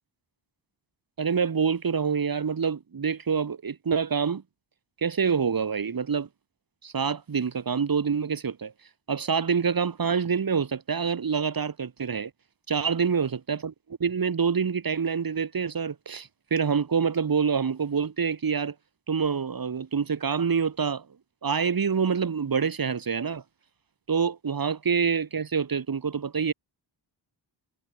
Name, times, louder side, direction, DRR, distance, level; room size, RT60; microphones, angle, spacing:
voice 1, 1.2-4.4 5.0-6.3 6.8-8.7 9.1-12.3 12.7-13.7 14.0-18.7 19.1-21.0 21.4-23.4 24.1-26.5, right 6 dB, 50° right, 3.3 m, -26 dB
wide cardioid pair, 175°, 45 cm